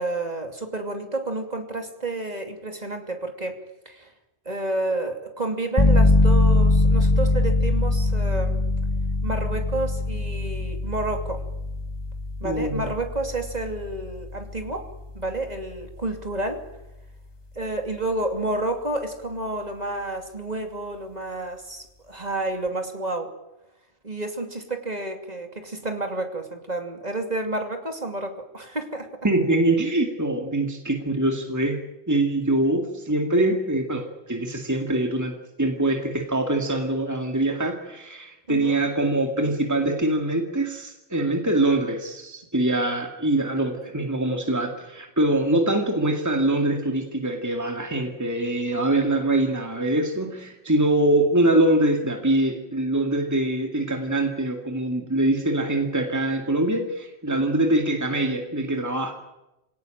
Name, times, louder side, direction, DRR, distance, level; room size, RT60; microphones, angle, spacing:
voice 1, 0.0-3.6 3.8-4.1 4.4-8.6 9.2-11.4 12.4-14.9 15.1-16.6 17.5-23.3 24.0-29.1 38.5-38.8, right 2 dB, 40° right, 4 dB, 2.9 m, -30 dB
sound 1, 5.8-16.3, left 2 dB, 25° left, 1.5 m, -23 dB
voice 2, 12.4-12.9 29.2-59.1, right 1 dB, 15° right, 3 dB, 2.2 m, -24 dB
26.5 x 18.0 x 9.1 m, 0.95 s
omnidirectional pair, 1.1 m